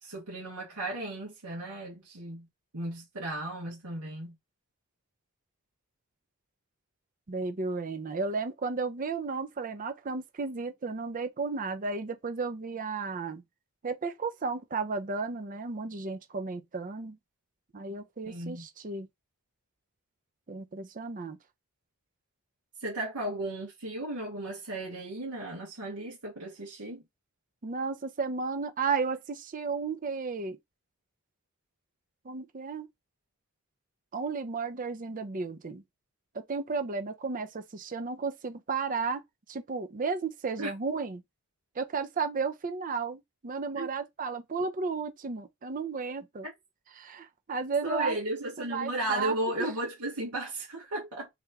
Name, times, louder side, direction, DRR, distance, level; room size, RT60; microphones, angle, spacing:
voice 1, 0.0-2.5 2.7-4.3 18.2-18.6 22.8-27.0 40.6-40.7 43.7-43.9 47.8-51.3, right 1 dB, 90° right, 1.6 m, -35 dB
voice 2, 7.3-13.4 13.8-17.2 17.7-19.1 20.5-21.4 27.6-30.6 32.2-32.9 34.1-35.8 36.3-39.2 39.5-41.2 41.8-46.5 47.0-48.2 48.6-49.7, right 4 dB, 35° right, 0.5 m, -33 dB
3.3 x 2.9 x 3.5 m
head